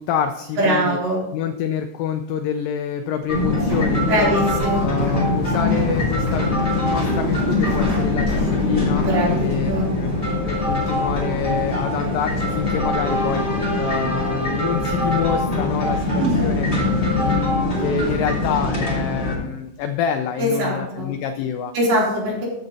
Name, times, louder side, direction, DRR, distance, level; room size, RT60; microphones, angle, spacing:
voice 1, 0.0-1.0 1.3-4.3 4.8-9.1 9.4-9.7 10.0-10.1 10.4-21.7, left 8 dB, 85° left, 7 dB, 2.0 m, -27 dB
voice 2, 0.6-1.2 4.1-4.8 9.0-9.9 16.2-16.4 20.4-21.1 21.7-22.5, right 1 dB, 60° right, -5 dB, 4.7 m, -22 dB
sound 1, 3.3-19.4, left 2 dB, 20° left, 1.5 m, -22 dB
sound 2, 3.7-11.1, right 2 dB, 35° right, 4.9 m, -37 dB
14.5 x 5.1 x 4.0 m, 0.85 s
omnidirectional pair, 4.5 m